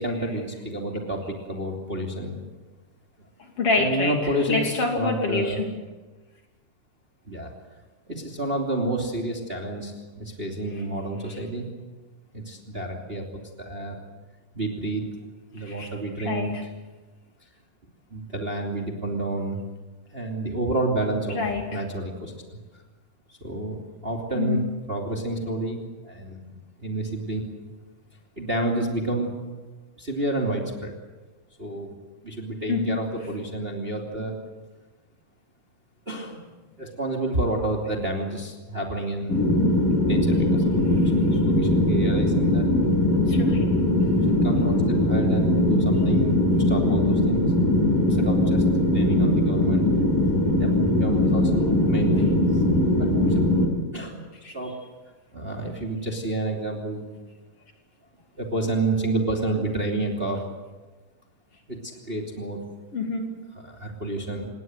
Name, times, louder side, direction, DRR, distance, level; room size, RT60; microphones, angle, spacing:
voice 1, 0.0-2.4 3.7-5.6 7.3-7.5 8.1-11.7 12.3-13.2 13.6-14.0 14.5-15.1 15.5-16.6 18.1-19.6 20.1-22.6 23.3-24.6 24.9-26.5 26.8-27.5 28.4-29.3 30.0-30.9 31.6-31.9 32.2-34.3 36.1-36.4 36.8-39.4 40.1-42.6 43.6-47.5 48.0-49.9 50.6-52.6 52.9-53.4 53.9-54.2 54.5-54.9 55.3-57.1 58.4-60.4 61.7-61.8 62.1-62.6 63.6-64.5, right 2 dB, 20° right, 1 dB, 2.7 m, -29 dB
voice 2, 3.4-5.7 10.7-10.8 15.6-15.9 16.2-16.6 21.3-21.8 24.3-24.7 32.7-33.1 43.2-43.8 54.4-54.5 62.9-63.4, left 3 dB, 45° left, 2 dB, 3.7 m, -27 dB
sound 1, 39.3-53.7, left 1 dB, 75° left, 8.8 m, -21 dB
27.5 x 20.5 x 8.0 m, 1.2 s
omnidirectional pair, 4.0 m